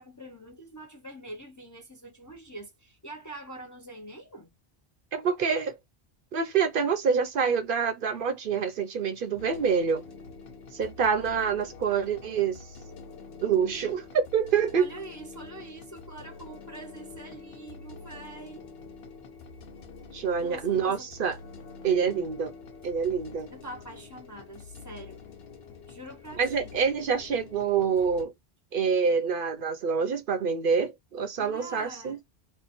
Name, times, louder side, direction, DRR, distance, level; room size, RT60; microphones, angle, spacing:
voice 1, 0.0-4.5 14.8-18.6 20.4-21.1 23.5-25.2 25.9-26.7 31.4-32.2, right 1 dB, 25° left, 0.5 m, -44 dB
voice 2, 5.1-5.8 6.3-10.0 10.7-12.6 13.4-14.9 20.1-21.4 21.8-22.5 22.8-23.5 26.3-28.3 28.7-32.2, right 6 dB, 60° right, 0.8 m, -26 dB
sound 1, 9.4-28.2, left 4 dB, 75° left, 1.0 m, -46 dB
3.0 x 2.1 x 4.0 m
omnidirectional pair, 1.1 m